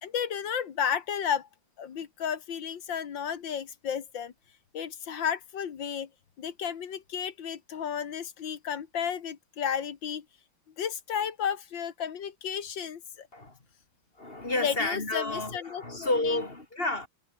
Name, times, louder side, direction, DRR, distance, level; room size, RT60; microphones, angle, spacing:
voice 1, 0.0-1.5 1.8-4.3 4.7-6.1 6.4-10.3 10.8-13.3 14.6-16.4, left 8 dB, 60° left, 2.3 m, -33 dB
voice 2, 14.2-17.1, left 2 dB, 25° left, 3.2 m, -30 dB
omnidirectional pair, 2.3 m